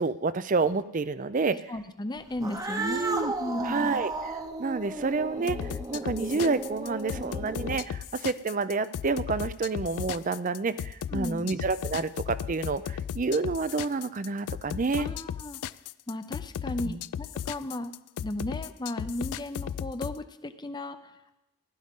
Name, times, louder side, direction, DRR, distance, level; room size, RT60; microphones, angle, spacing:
voice 1, 0.0-1.6 2.8-3.3 3.7-4.1 4.6-15.1 16.8-17.0, right 4 dB, 35° right, 14 dB, 0.4 m, -29 dB
voice 2, 1.5-4.0 11.1-11.5 15.0-15.6 16.1-17.9 18.2-21.4, left 1 dB, 20° left, 10 dB, 0.6 m, -35 dB
Cat, 2.3-8.0, right 2 dB, 15° right, 0.8 m, -35 dB
sound 1, 5.5-20.2, left 9 dB, 85° left, 0.3 m, -35 dB
16.0 x 12.0 x 3.7 m, 0.95 s
head